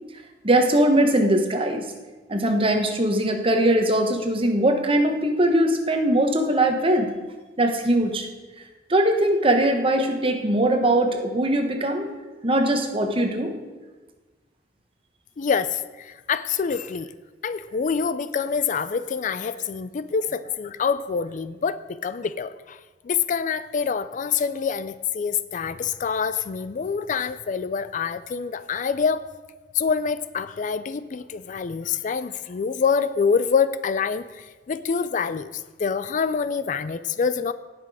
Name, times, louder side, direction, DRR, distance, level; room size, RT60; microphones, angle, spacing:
voice 1, 0.4-1.9 2.3-7.1 7.6-8.3 8.9-12.1 12.4-13.5, right 1 dB, 30° right, 5 dB, 1.2 m, -21 dB
voice 2, 15.4-17.1 17.4-22.8 23.0-29.3 29.7-37.5, left 6 dB, 45° left, 14 dB, 0.4 m, -26 dB
17.5 x 6.0 x 4.9 m, 1.3 s
head